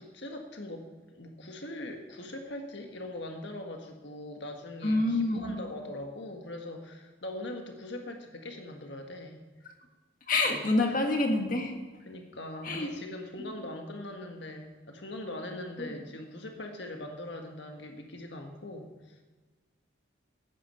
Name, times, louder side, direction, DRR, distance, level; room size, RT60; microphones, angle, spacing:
voice 1, 0.0-9.4 10.9-11.0 12.0-19.2, left 1 dB, 65° left, 3 dB, 1.6 m, -41 dB
voice 2, 4.8-5.6 10.3-11.8 12.6-12.9 15.8-15.9, left 2 dB, 45° left, 3 dB, 1.8 m, -27 dB
14.5 x 9.5 x 5.7 m, 1.4 s
head